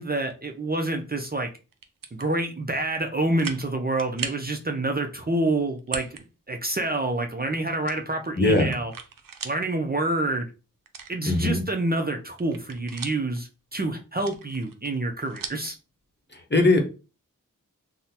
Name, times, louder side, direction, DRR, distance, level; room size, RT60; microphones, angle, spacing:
voice 1, 0.0-1.5 2.1-6.1 6.5-8.9 9.4-10.5 11.1-15.7, right 2 dB, 30° right, 3 dB, 0.5 m, -27 dB
sound 1, 1.7-2.3 2.8-2.9 3.4-3.7 4.0-4.5 5.8-6.2 6.6-6.7 7.9-9.6 10.0-10.1 10.9-11.7 12.1-13.4 14.1-15.7, right 6 dB, 90° right, 0.5 m, -38 dB
voice 2, 8.4-8.7 11.3-11.6 16.5-16.8, left 2 dB, 35° left, 3 dB, 0.8 m, -20 dB
3.7 x 2.0 x 2.7 m, 0.32 s
wide cardioid pair, 45°, 32 cm